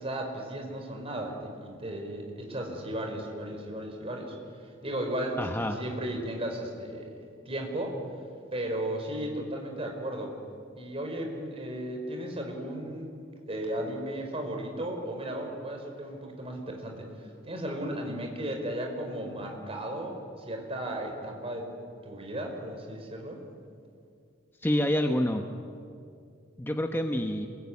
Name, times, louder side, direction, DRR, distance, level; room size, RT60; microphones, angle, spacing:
voice 1, 0.0-4.3 4.8-7.1 7.4-8.0 8.5-10.3 10.8-13.1 13.5-17.1 17.4-21.7 22.0-23.4, right 1 dB, 30° right, 2 dB, 4.9 m, -35 dB
voice 2, 5.4-5.8 24.6-25.4 26.6-27.5, left 1 dB, 10° left, 4 dB, 1.2 m, -27 dB
27.0 x 22.5 x 9.7 m, 2.4 s
head